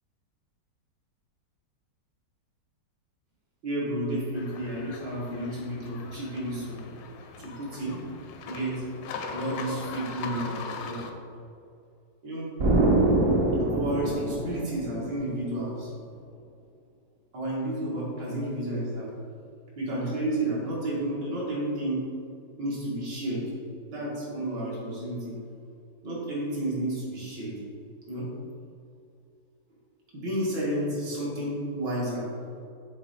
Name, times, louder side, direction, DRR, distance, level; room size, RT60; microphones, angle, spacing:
voice 1, 3.6-6.9 7.4-8.0 8.5-8.8 9.3-11.1 12.2-12.5 13.7-15.9 17.3-19.1 19.8-22.1 22.6-23.5 23.9-25.4 26.0-27.6 28.1-28.3 30.1-32.3, right 1 dB, 75° right, -5 dB, 2.3 m, -31 dB
sound 1, 4.3-11.1, left 4 dB, 80° left, 1.3 m, -40 dB
Explosion, 12.6-15.3, right 2 dB, 55° right, 1.1 m, -24 dB
6.8 x 3.9 x 4.1 m, 2.4 s
omnidirectional pair, 2.0 m